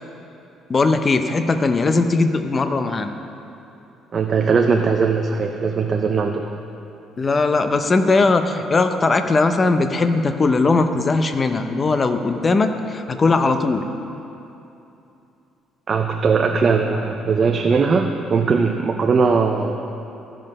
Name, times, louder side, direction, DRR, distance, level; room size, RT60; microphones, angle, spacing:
voice 1, 0.7-3.1 7.2-13.9, left 3 dB, 25° left, 8 dB, 0.6 m, -19 dB
voice 2, 4.1-6.5 15.9-19.7, right 5 dB, 35° right, 3 dB, 0.5 m, -19 dB
15.5 x 5.4 x 5.3 m, 2.8 s
cardioid pair, 130°, 0 cm